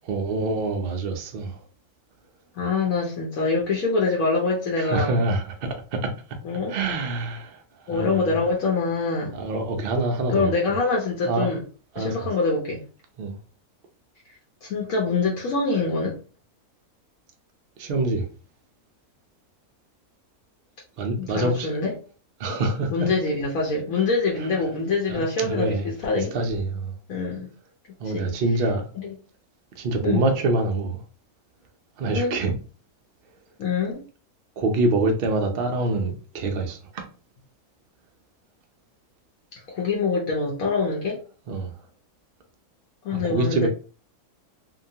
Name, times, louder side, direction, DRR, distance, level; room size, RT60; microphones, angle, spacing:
voice 1, 0.0-1.6 4.8-6.1 6.7-8.4 9.3-10.5 11.2-11.5 11.9-12.3 13.2-13.3 17.8-18.3 21.0-21.7 22.4-23.1 24.4-24.5 25.1-25.9 26.2-26.9 28.0-28.8 29.8-31.0 32.0-32.6 34.6-37.0 41.5-41.7 43.1-43.7, right 2 dB, 75° right, 0.5 m, -26 dB
voice 2, 2.5-5.2 6.4-6.8 7.9-9.3 10.3-11.6 12.0-12.8 14.6-16.2 21.2-21.9 22.9-26.3 27.1-27.5 28.1-28.3 29.0-29.1 30.0-30.3 32.1-32.4 33.6-34.0 39.5-41.2 43.0-43.7, left 4 dB, 70° left, 1.1 m, -25 dB
2.8 x 2.3 x 2.7 m
omnidirectional pair, 1.6 m